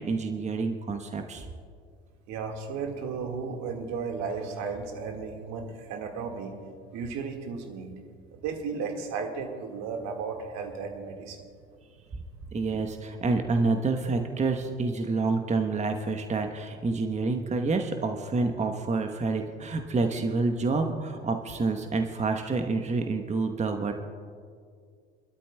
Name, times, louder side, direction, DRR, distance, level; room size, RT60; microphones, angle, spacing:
voice 1, 0.0-1.5 12.5-23.9, right 3 dB, 20° right, 5 dB, 1.1 m, -28 dB
voice 2, 2.3-6.5 6.9-8.0 8.3-11.4, right 5 dB, 60° right, 3 dB, 1.9 m, -34 dB
27.5 x 13.0 x 2.3 m, 2.1 s
hypercardioid pair, 60°, 32 cm